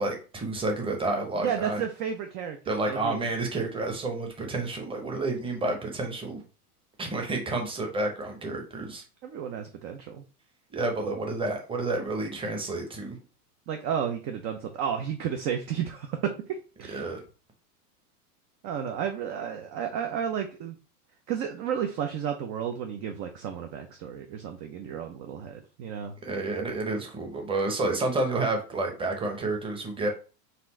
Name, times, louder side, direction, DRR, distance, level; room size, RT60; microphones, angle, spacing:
voice 1, 0.0-1.8 2.7-6.4 7.0-9.0 10.7-13.2 16.9-17.2 26.2-30.1, right 2 dB, 10° right, 2 dB, 0.8 m, -30 dB
voice 2, 1.4-3.2 9.2-10.2 13.7-17.0 18.6-20.7 21.3-26.1, right 8 dB, 30° right, 5 dB, 0.4 m, -32 dB
4.2 x 2.5 x 4.2 m, 0.35 s
supercardioid pair, 130°, 46 cm